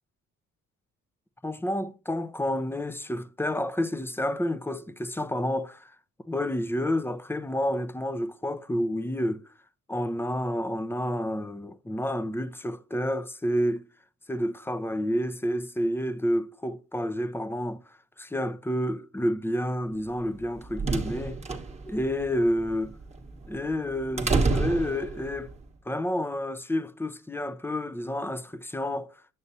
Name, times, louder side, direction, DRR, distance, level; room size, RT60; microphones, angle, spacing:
voice 1, 1.4-5.9 6.3-9.4 9.9-13.9 14.3-17.8 18.2-21.4 21.9-22.9 23.5-25.5 25.9-29.2, equal, 10° left, 0.5 m, -29 dB
sound 1, 20.3-25.5, right 3 dB, 20° right, 1.1 m, -30 dB
8.1 x 6.3 x 2.7 m
cardioid pair, 90°, 30 cm